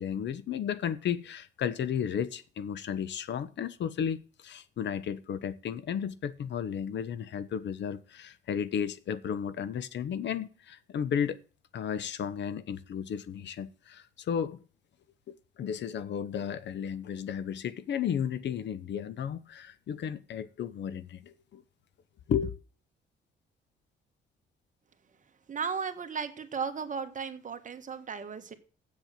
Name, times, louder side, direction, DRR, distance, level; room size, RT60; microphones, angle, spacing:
voice 1, 0.0-11.4 11.7-14.6 15.3-21.6 22.3-22.5, left 8 dB, 65° left, 0.9 m, -33 dB
voice 2, 25.5-28.5, right 6 dB, 40° right, 1.5 m, -35 dB
7.6 x 7.4 x 7.6 m
cardioid pair, 90°, 20 cm